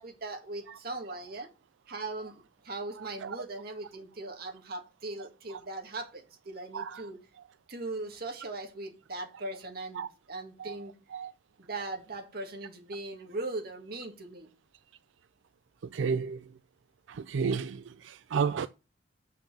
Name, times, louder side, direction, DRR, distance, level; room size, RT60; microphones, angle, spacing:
voice 1, 0.0-1.5 1.9-7.2 7.7-10.9 11.6-14.5, right 2 dB, 55° right, 1.9 m, -39 dB
voice 2, 15.9-16.4 17.1-18.7, right 6 dB, 85° right, 0.4 m, -32 dB
7.3 x 5.7 x 7.1 m
head